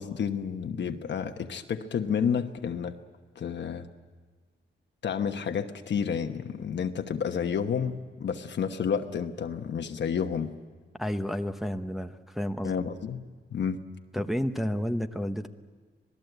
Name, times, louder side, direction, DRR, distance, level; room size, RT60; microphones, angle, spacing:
voice 1, 0.0-3.0 3.3-3.9 5.0-10.5 12.6-13.8, left 7 dB, 70° left, 5 dB, 1.1 m, -30 dB
voice 2, 11.0-12.7 14.1-15.5, equal, ahead, 6 dB, 0.9 m, -31 dB
26.0 x 19.0 x 8.0 m, 1.4 s
wide cardioid pair, 125°, 19 cm